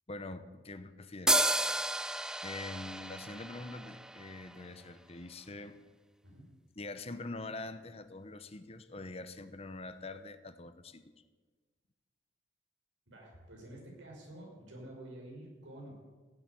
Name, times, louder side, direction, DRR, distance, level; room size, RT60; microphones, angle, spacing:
voice 1, 0.1-1.5 2.4-5.8 6.8-11.0, left 2 dB, 30° left, 11 dB, 0.9 m, -44 dB
sound 1, 1.3-4.8, right 1 dB, 5° right, 0.4 m, -32 dB
voice 2, 13.1-15.9, right 1 dB, 80° right, -1 dB, 5.6 m, -49 dB
16.0 x 8.2 x 9.7 m, 1.4 s
head